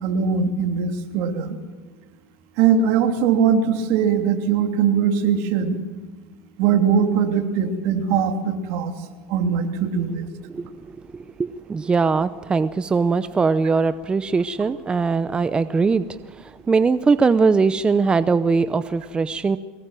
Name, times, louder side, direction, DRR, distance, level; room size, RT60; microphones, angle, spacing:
voice 1, 0.0-1.6 2.6-5.8 6.6-8.9 9.3-10.3, right 7 dB, 65° right, 6 dB, 3.0 m, -21 dB
voice 2, 11.1-16.1 16.3-19.6, right 4 dB, 20° right, 13 dB, 0.7 m, -21 dB
22.5 x 19.5 x 7.6 m, 1.4 s
supercardioid pair, 120°, 5 cm